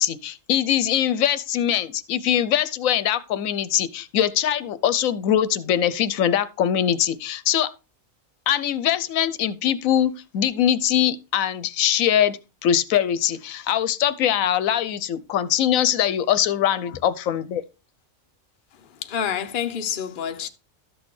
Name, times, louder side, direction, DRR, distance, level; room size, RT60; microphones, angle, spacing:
voice 1, 0.0-7.7 8.5-17.6, left 10 dB, 80° left, 1.0 m, -22 dB
voice 2, 18.7-20.5, left 8 dB, 45° left, 0.8 m, -29 dB
12.5 x 6.3 x 3.2 m
omnidirectional pair, 1.4 m